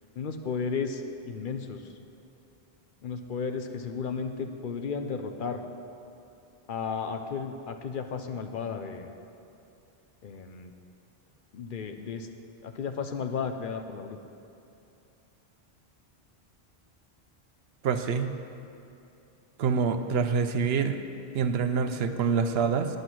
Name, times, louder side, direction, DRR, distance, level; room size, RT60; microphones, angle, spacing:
voice 1, 0.2-1.9 3.0-5.6 6.7-9.1 10.2-10.7 11.5-12.3 12.6-14.2, left 5 dB, 60° left, 6 dB, 0.7 m, -34 dB
voice 2, 17.8-18.3 19.6-21.0 21.3-22.9, right 6 dB, 75° right, 9 dB, 0.8 m, -26 dB
10.0 x 7.7 x 6.1 m, 2.7 s
omnidirectional pair, 1.1 m